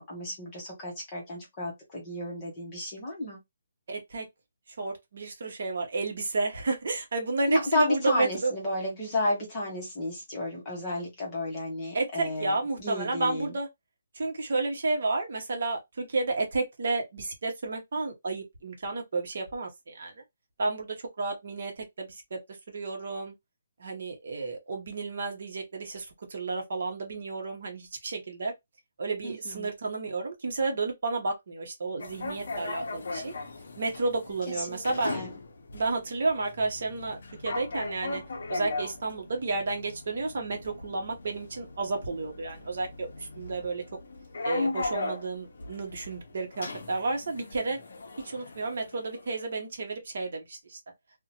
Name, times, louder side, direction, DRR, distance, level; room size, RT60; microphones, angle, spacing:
voice 1, 0.0-3.4 7.5-13.5 29.2-29.7 34.6-35.3, left 1 dB, 15° left, 0.8 m, -32 dB
voice 2, 3.9-4.3 4.8-8.5 11.9-13.7 14.1-20.1 20.6-22.4 22.7-23.3 23.8-28.5 29.0-33.3 33.8-35.1 35.7-37.2 37.4-38.2 38.5-43.8 44.4-47.8 48.2-50.8, right 3 dB, 45° right, 0.8 m, -31 dB
sound 1, 32.0-49.5, left 3 dB, 50° left, 0.6 m, -38 dB
2.6 x 2.1 x 2.7 m
hypercardioid pair, 180°, 0 cm